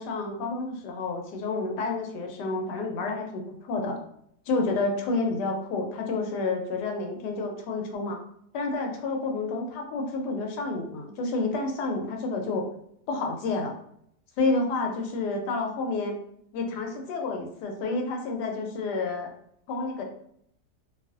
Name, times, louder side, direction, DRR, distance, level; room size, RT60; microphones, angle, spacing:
voice 1, 0.0-4.0 4.5-8.2 8.5-12.7 13.1-13.7 14.4-16.2 16.5-19.3 19.7-20.0, left 3 dB, 80° left, 2 dB, 1.2 m, -29 dB
2.7 x 2.4 x 2.4 m, 0.70 s
omnidirectional pair, 1.8 m